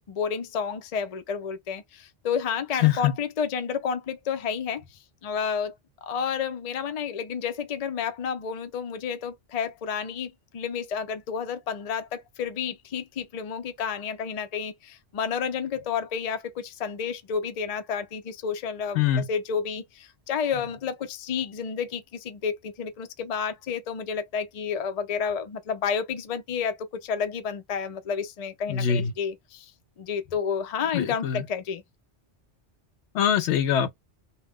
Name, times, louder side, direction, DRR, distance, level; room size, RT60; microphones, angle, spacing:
voice 1, 0.0-4.8 5.2-5.7 6.0-29.7 30.0-31.8, left 6 dB, 50° left, 0.5 m, -30 dB
voice 2, 2.8-3.1 18.9-19.3 28.7-29.1 30.9-31.4 33.1-33.9, left 9 dB, 75° left, 0.8 m, -23 dB
2.4 x 2.2 x 3.4 m
omnidirectional pair, 1.2 m